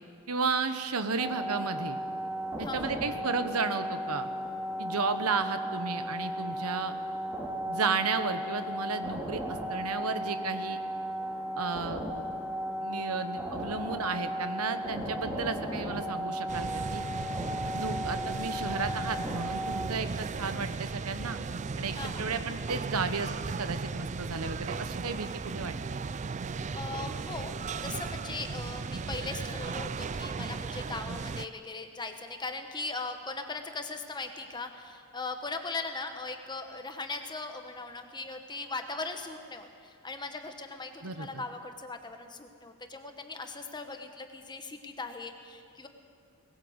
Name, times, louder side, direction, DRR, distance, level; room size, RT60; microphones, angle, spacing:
voice 1, 0.3-2.0 2.6-4.3 4.8-6.9 7.7-10.8 11.6-12.0 12.8-17.0 17.7-21.4 21.8-25.7 41.0-41.4, right 4 dB, 85° right, 9 dB, 1.2 m, -33 dB
sound 1, 1.2-19.9, equal, 10° right, 2.6 m, -35 dB
voice 2, 2.6-3.0 21.9-22.3 26.7-45.9, left 3 dB, 20° left, 6 dB, 1.2 m, -39 dB
sound 2, 16.5-31.5, right 4 dB, 35° right, 0.4 m, -36 dB
19.5 x 17.5 x 8.1 m, 2.2 s
head